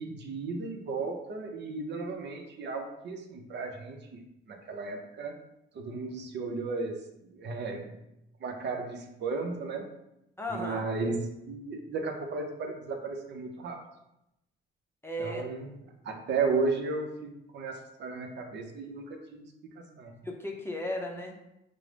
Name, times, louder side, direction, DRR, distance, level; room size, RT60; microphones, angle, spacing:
voice 1, 0.0-5.4 5.7-7.0 7.3-7.9 8.4-9.9 10.5-13.8 15.2-15.7 16.0-19.5 20.0-20.2, right 4 dB, 60° right, 3 dB, 0.6 m, -34 dB
voice 2, 10.4-10.9 15.0-15.4 20.2-21.4, left 1 dB, 10° left, 1 dB, 0.6 m, -35 dB
4.9 x 2.0 x 3.2 m, 0.87 s
cardioid pair, 90°, 20 cm